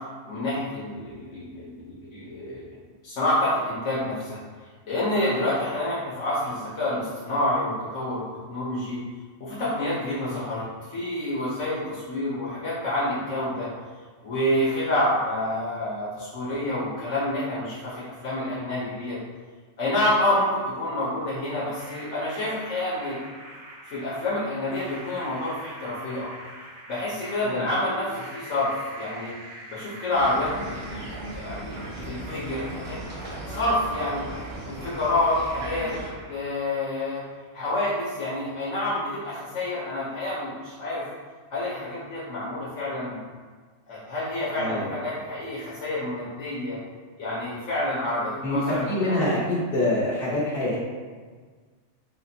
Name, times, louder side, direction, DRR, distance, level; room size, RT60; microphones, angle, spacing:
voice 1, 0.2-2.6 3.0-4.4 4.8-8.2 8.5-9.0 9.4-13.7 14.2-19.2 19.8-23.2 23.9-26.3 26.9-29.3 29.7-30.7 31.3-31.7 32.1-33.0 33.2-34.2 34.7-36.0 36.3-37.2 37.5-41.1 41.5-43.2 43.9-46.8 47.2-49.2, left 1 dB, 75° left, -8 dB, 1.2 m, -28 dB
sound 1, 21.8-37.7, right 1 dB, 45° right, 0.7 m, -45 dB
sound 2, 30.1-36.1, right 1 dB, 85° right, 1.4 m, -37 dB
voice 2, 44.6-44.9 48.4-48.6 48.9-50.8, left 1 dB, 50° left, -8 dB, 1.5 m, -25 dB
4.1 x 2.2 x 4.2 m, 1.5 s
omnidirectional pair, 1.2 m